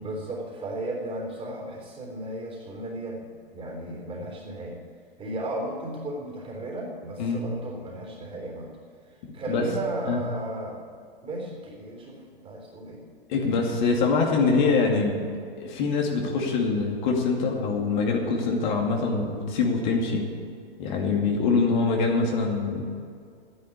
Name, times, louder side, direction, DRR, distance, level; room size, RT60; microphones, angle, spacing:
voice 1, 0.0-4.8 5.2-8.7 9.3-10.8 11.2-13.0, right 1 dB, 20° right, -1 dB, 3.7 m, -35 dB
voice 2, 13.3-15.2 15.6-20.2 20.8-22.8, left 4 dB, 50° left, 0 dB, 2.5 m, -24 dB
12.0 x 9.9 x 8.3 m, 2.3 s
figure-of-eight pair, 110°, 29 cm